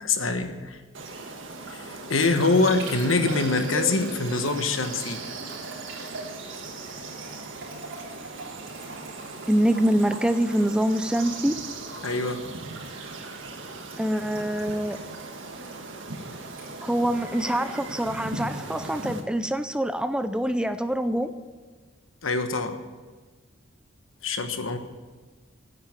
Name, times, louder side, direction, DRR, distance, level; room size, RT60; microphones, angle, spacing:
voice 1, 0.0-0.8 1.7-5.2 12.0-12.4 22.2-22.8 24.2-24.8, left 3 dB, 85° left, 7 dB, 1.3 m, -24 dB
sound 1, 0.9-19.2, right 3 dB, 75° right, 1.6 m, -39 dB
Liquid, 1.7-18.1 18.3-18.8, right 2 dB, 90° right, 3.8 m, -42 dB
voice 2, 9.5-11.6 14.0-15.0 16.8-21.3, right 1 dB, 5° right, 10 dB, 0.4 m, -25 dB
9.7 x 9.5 x 9.9 m, 1.4 s
head